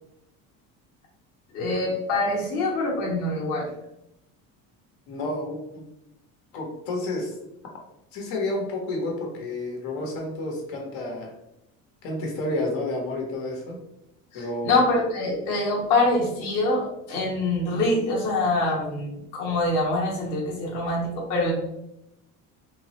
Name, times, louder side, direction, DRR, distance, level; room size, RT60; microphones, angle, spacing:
voice 1, 1.5-3.7 14.3-21.5, left 2 dB, 55° left, -3 dB, 0.9 m, -25 dB
voice 2, 5.1-5.9 6.5-7.3 8.1-11.3 12.0-13.8 14.3-14.8, left 2 dB, 80° left, 0 dB, 0.9 m, -30 dB
3.4 x 2.0 x 2.8 m, 0.84 s
cardioid pair, 170°, 35 cm